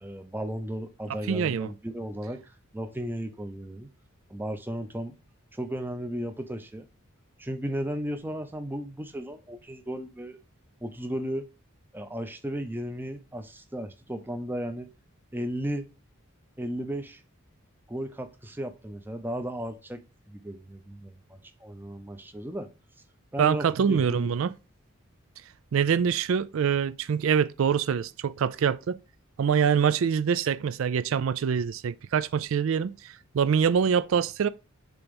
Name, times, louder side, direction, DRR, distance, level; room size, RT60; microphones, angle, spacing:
voice 1, 0.0-2.4 2.7-3.9 4.3-5.2 5.5-6.9 7.4-10.4 10.8-11.5 11.9-14.9 15.3-15.9 16.6-17.2 17.9-22.7 23.3-24.3, equal, 10° right, 0.6 m, -35 dB
voice 2, 1.3-1.7 23.4-24.5 25.7-29.0 29.4-34.5, right 7 dB, 70° right, 0.4 m, -25 dB
6.9 x 3.0 x 5.3 m
head